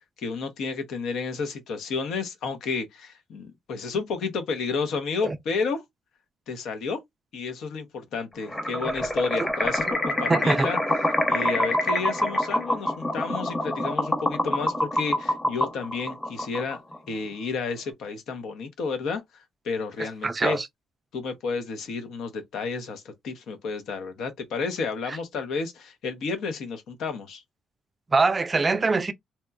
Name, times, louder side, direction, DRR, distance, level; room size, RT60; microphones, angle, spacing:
voice 1, 0.2-5.8 6.5-7.0 7.3-10.8 11.3-16.8 17.1-20.6 21.1-27.4, left 4 dB, 80° left, 0.7 m, -31 dB
sound 1, 8.5-17.0, left 1 dB, 20° left, 0.9 m, -26 dB
voice 2, 10.3-10.7 20.0-20.7 28.1-29.1, right 3 dB, 30° right, 0.3 m, -23 dB
2.8 x 2.1 x 2.3 m
cardioid pair, 90°, 0 cm